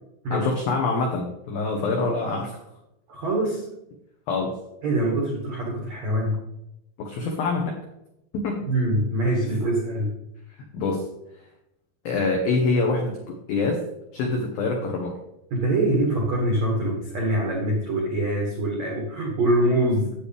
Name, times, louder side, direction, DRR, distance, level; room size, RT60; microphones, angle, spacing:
voice 1, 0.3-2.6 4.3-4.6 7.0-7.8 8.3-8.6 10.7-11.0 12.1-13.8 14.1-15.2, left 3 dB, 85° left, 1 dB, 2.1 m, -25 dB
voice 2, 3.1-3.6 4.8-6.4 8.7-10.1 15.5-20.1, right 1 dB, 85° right, -2 dB, 1.5 m, -24 dB
9.7 x 8.4 x 3.3 m, 0.85 s
omnidirectional pair, 5.9 m